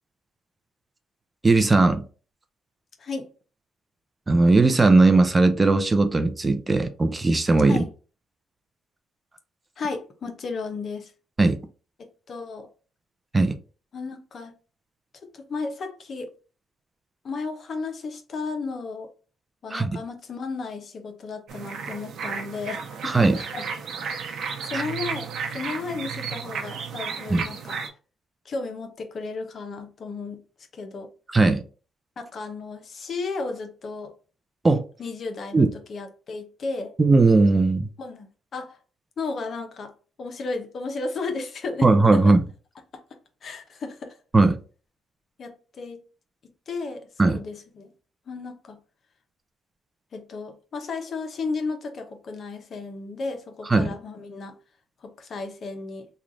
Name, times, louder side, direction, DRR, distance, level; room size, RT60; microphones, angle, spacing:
voice 1, 1.4-2.0 4.3-7.8 11.4-11.6 13.3-13.5 19.7-19.9 23.0-23.4 24.7-24.8 27.3-27.4 31.3-31.6 34.6-34.8 35.5-35.7 37.0-37.9 41.8-42.4 44.3-44.6 47.2-47.4 53.7-53.9, right 3 dB, 25° right, 0.5 m, -18 dB
voice 2, 9.8-11.1 12.3-12.7 13.9-14.5 15.3-16.3 17.2-19.1 19.6-23.7 24.4-27.8 28.4-30.4 30.7-31.1 32.2-34.1 35.0-37.0 38.0-38.8 39.2-39.9 40.2-41.9 42.1-42.3 42.9-43.0 43.4-44.2 45.4-46.0 46.4-47.9 48.3-48.8 50.1-54.6 55.0-56.1, left 4 dB, 50° left, 0.8 m, -34 dB
sound 1, 21.5-27.9, right 6 dB, 70° right, 0.7 m, -33 dB
3.1 x 2.4 x 3.9 m
cardioid pair, 90°, 0 cm